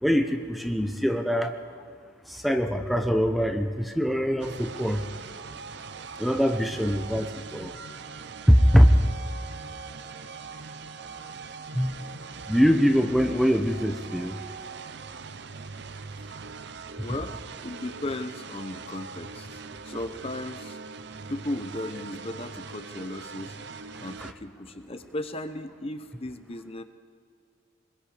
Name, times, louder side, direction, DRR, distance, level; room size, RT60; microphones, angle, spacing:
voice 1, 0.0-1.5 2.3-5.0 6.2-7.7 8.5-8.9 11.7-12.0 12.5-14.4 24.2-24.3, equal, ahead, 5 dB, 0.9 m, -23 dB
sound 1, 4.4-24.3, right 5 dB, 60° right, 0.7 m, -41 dB
voice 2, 17.0-17.4 17.6-20.8 21.3-26.8, left 1 dB, 30° left, 9 dB, 0.9 m, -36 dB
24.5 x 21.5 x 5.1 m, 2.1 s
head